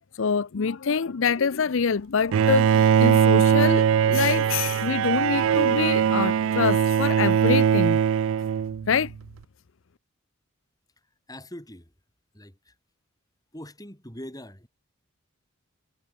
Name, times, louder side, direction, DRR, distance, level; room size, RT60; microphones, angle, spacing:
voice 1, 0.1-8.0 8.9-9.1, left 6 dB, 65° left, 0.6 m, -25 dB
Bowed string instrument, 2.3-9.1, right 8 dB, 65° right, 0.3 m, -21 dB
voice 2, 11.3-11.9 12.3-12.8 13.5-14.7, left 1 dB, 15° left, 7.9 m, -42 dB
head